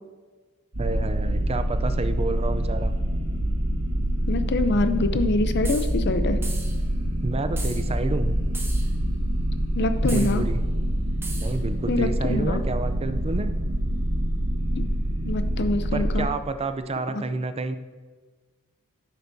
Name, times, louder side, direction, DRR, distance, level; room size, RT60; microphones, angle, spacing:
sound 1, 0.7-16.2, right 1 dB, 90° right, 1.5 m, -26 dB
voice 1, 0.8-2.9 7.2-8.4 10.1-10.6 11.3-13.5 15.9-17.8, right 3 dB, 25° right, 10 dB, 0.5 m, -29 dB
voice 2, 4.3-6.4 9.8-10.4 11.9-12.6 14.8-14.9 15.3-16.3 17.1-17.2, left 2 dB, 50° left, 10 dB, 0.6 m, -25 dB
sound 2, 5.6-5.9 6.4-6.8 7.6-7.9 8.5-8.9 10.1-10.4 11.2-11.6, right 3 dB, 10° right, 0.8 m, -37 dB
10.5 x 8.1 x 2.7 m, 1.4 s
head